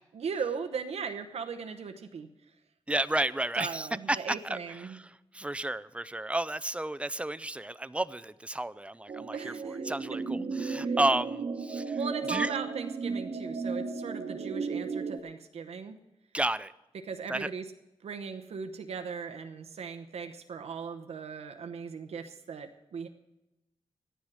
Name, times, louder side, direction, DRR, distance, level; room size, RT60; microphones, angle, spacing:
voice 1, 0.1-2.3 3.5-5.0 9.3-9.9 10.8-11.0 12.0-16.0 17.0-17.6 18.0-23.1, right 6 dB, 90° right, 6 dB, 0.9 m, -38 dB
voice 2, 2.9-4.2 4.4-12.0 12.3-12.5 16.3-16.7 17.3-17.5, right 1 dB, 10° right, 15 dB, 0.5 m, -32 dB
sound 1, 9.1-15.2, right 4 dB, 60° right, 1.1 m, -34 dB
13.5 x 10.0 x 6.3 m, 0.94 s
wide cardioid pair, 80°, 10 cm